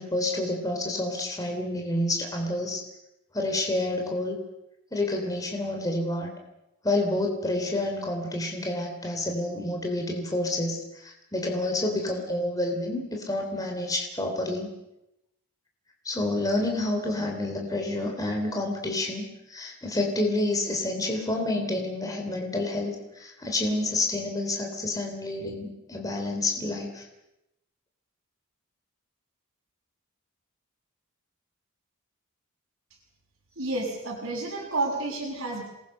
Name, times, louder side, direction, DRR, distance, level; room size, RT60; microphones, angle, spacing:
voice 1, 0.0-2.8 3.3-4.4 4.9-6.3 6.8-14.7 16.0-27.1, left 2 dB, 15° left, 2 dB, 3.5 m, -29 dB
voice 2, 33.6-35.6, right 2 dB, 55° right, -6 dB, 6.3 m, -30 dB
27.5 x 21.0 x 6.6 m, 0.88 s
head